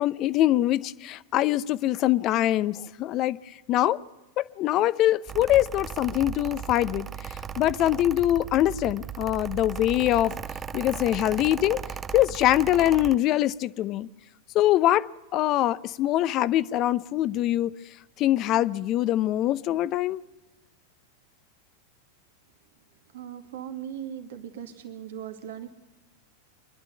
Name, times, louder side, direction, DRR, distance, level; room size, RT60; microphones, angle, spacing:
voice 1, 0.0-3.4 3.7-4.0 4.4-10.3 10.7-11.8 12.1-14.1 14.5-17.7 18.2-20.2, left 14 dB, 40° left, 0.7 m, -23 dB
Mechanical fan, 5.3-13.2, right 8 dB, 25° right, 0.6 m, -37 dB
voice 2, 23.1-25.7, right 9 dB, 65° right, 2.0 m, -38 dB
26.0 x 11.5 x 9.5 m
hypercardioid pair, 95°, 0 cm